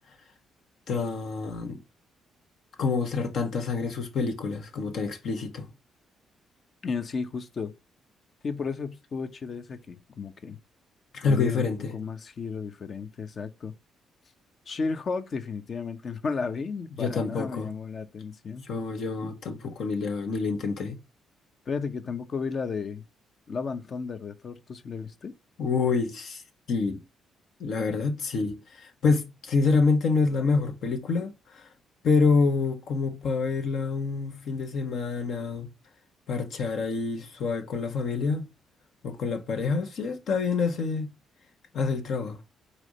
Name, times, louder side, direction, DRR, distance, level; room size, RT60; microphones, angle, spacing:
voice 1, 0.9-1.8 2.8-5.7 11.1-11.9 17.0-17.7 18.7-21.0 25.6-26.4 26.7-27.0 27.6-31.7 32.0-35.7 36.3-38.5 39.0-41.1 41.7-42.4, left 4 dB, 65° left, 1.5 m, -27 dB
voice 2, 6.8-7.7 8.4-10.6 11.2-13.7 14.7-18.6 19.2-19.3 21.7-23.0 23.5-25.3, left 5 dB, 45° left, 1.0 m, -33 dB
4.8 x 4.3 x 4.9 m
cardioid pair, 90°, 0 cm